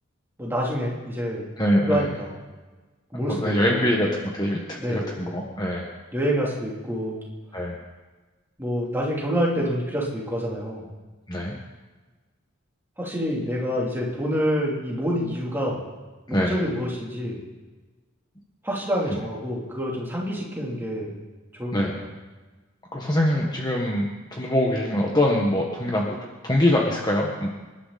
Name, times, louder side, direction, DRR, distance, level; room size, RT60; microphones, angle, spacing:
voice 1, 0.4-1.5 1.9-2.3 3.1-3.9 4.8-5.3 6.1-7.2 8.6-10.9 13.0-15.8 16.3-17.4 18.6-21.2 21.6-22.1, equal, 10° right, -4 dB, 3.3 m, -27 dB
voice 2, 1.6-2.1 3.2-5.9 7.5-7.8 11.3-11.5 16.3-16.6 21.7-22.0 22.9-26.2 26.4-27.5, left 1 dB, 20° left, -1 dB, 1.6 m, -23 dB
27.0 x 12.0 x 4.3 m, 1.3 s
head